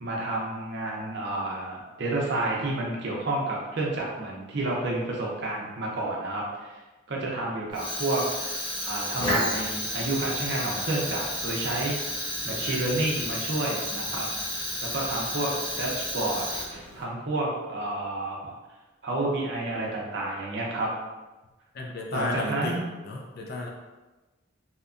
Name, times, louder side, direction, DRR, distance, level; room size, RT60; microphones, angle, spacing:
voice 1, 0.0-6.8 7.1-8.2 8.8-12.0 12.4-14.3 14.8-16.4 16.9-18.5 19.0-20.9 22.1-22.8, right 2 dB, 55° right, -3 dB, 0.6 m, -30 dB
Fire, 7.7-17.0, left 1 dB, 25° left, 0.9 m, -32 dB
voice 2, 21.7-22.8 23.0-23.7, left 2 dB, 50° left, 0 dB, 0.4 m, -32 dB
2.8 x 2.2 x 2.4 m, 1.2 s
head